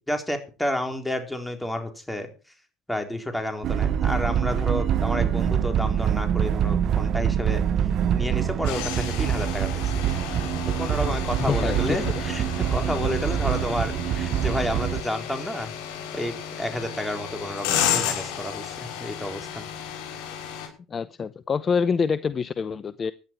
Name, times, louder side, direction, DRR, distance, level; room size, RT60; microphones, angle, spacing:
voice 1, 0.1-2.3 2.9-7.6 8.1-9.9 10.8-15.7 16.1-19.6, left 1 dB, 5° left, 4.0 m, -30 dB
sound 1, 3.6-15.0, right 9 dB, 55° right, 0.9 m, -25 dB
sound 2, 8.6-20.7, left 9 dB, 70° left, 6.6 m, -32 dB
voice 2, 11.4-12.2 20.9-23.1, left 6 dB, 35° left, 0.7 m, -26 dB
16.5 x 11.0 x 4.6 m
hypercardioid pair, 75°, 0 cm